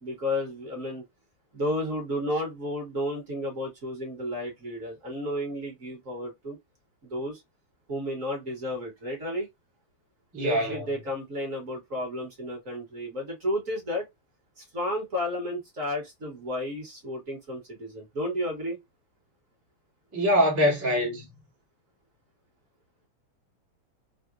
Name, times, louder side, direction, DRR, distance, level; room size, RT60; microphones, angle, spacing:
voice 1, 0.0-1.0 1.5-6.6 7.1-7.4 7.9-9.5 10.4-14.1 14.6-18.8, left 1 dB, 40° right, 1.5 m, -32 dB
voice 2, 10.3-11.0 20.1-21.4, equal, 15° right, 0.6 m, -24 dB
4.0 x 2.0 x 2.3 m
omnidirectional pair, 2.3 m